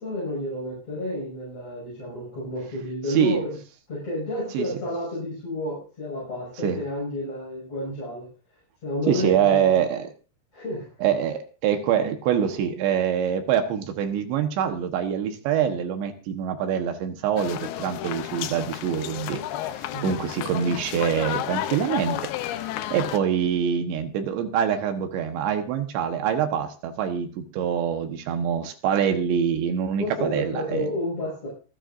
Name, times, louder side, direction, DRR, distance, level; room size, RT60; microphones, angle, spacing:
voice 1, 0.0-3.6 3.9-8.3 8.8-9.7 10.5-10.9 19.9-20.2 30.0-31.5, left 1 dB, 35° left, -6 dB, 7.5 m, -30 dB
voice 2, 3.1-3.4 4.5-4.7 6.6-6.8 9.1-10.1 11.0-19.4 19.7-22.3 22.6-30.9, right 8 dB, 75° right, 6 dB, 3.4 m, -25 dB
sound 1, 17.4-23.2, left 13 dB, 80° left, 2.3 m, -32 dB
25.0 x 9.6 x 2.6 m, 0.36 s
omnidirectional pair, 5.4 m